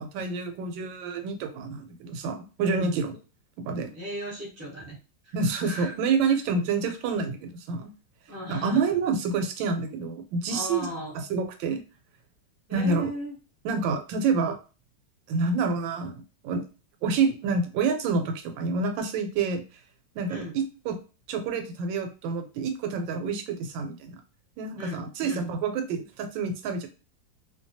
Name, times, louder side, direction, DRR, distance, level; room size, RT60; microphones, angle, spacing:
voice 1, 0.0-3.2 3.7-3.9 5.3-7.9 8.5-10.9 11.1-11.8 12.7-13.1 13.6-14.6 15.3-16.6 17.0-19.6 20.2-21.0 21.3-24.2 24.6-26.9, right 4 dB, 90° right, 6 dB, 1.3 m, -28 dB
voice 2, 3.7-5.0 5.2-5.3 5.6-6.0 8.3-8.9 10.5-11.2 12.7-13.3 20.3-20.6 24.8-25.5, equal, 15° right, -5 dB, 0.7 m, -37 dB
2.9 x 2.2 x 2.6 m, 0.33 s
omnidirectional pair, 2.0 m